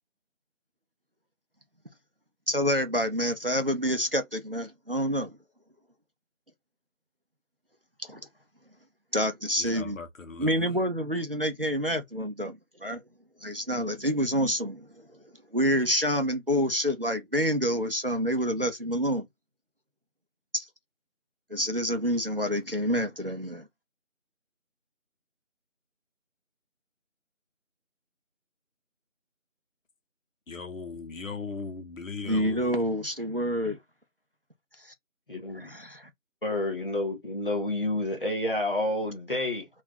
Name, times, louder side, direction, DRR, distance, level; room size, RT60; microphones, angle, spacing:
voice 1, 2.5-5.3 8.0-8.2 9.1-10.0 10.4-13.0 13.4-19.3 20.5-20.7 21.5-23.7 32.2-33.8 34.8-34.9 35.6-36.1, equal, 45° right, 0.5 m, -28 dB
voice 2, 9.6-10.5 30.5-32.7, left 4 dB, 75° left, 0.7 m, -38 dB
voice 3, 35.3-35.7 36.4-39.7, left 1 dB, 40° left, 1.0 m, -29 dB
2.3 x 2.3 x 3.8 m
figure-of-eight pair, 175°, 39 cm